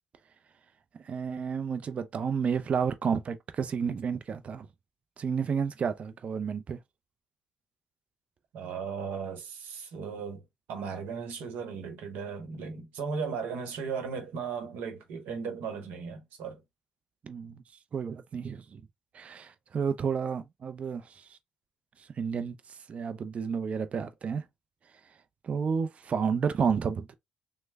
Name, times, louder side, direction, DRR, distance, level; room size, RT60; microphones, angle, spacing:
voice 1, 1.0-4.7 5.2-6.8 17.2-17.6 17.9-18.8 19.1-21.4 22.0-24.4 25.4-27.1, right 6 dB, 45° right, 0.5 m, -31 dB
voice 2, 8.5-10.4 10.7-16.6, right 5 dB, 80° right, 0.9 m, -36 dB
3.2 x 2.1 x 3.3 m
supercardioid pair, 65°, 3 cm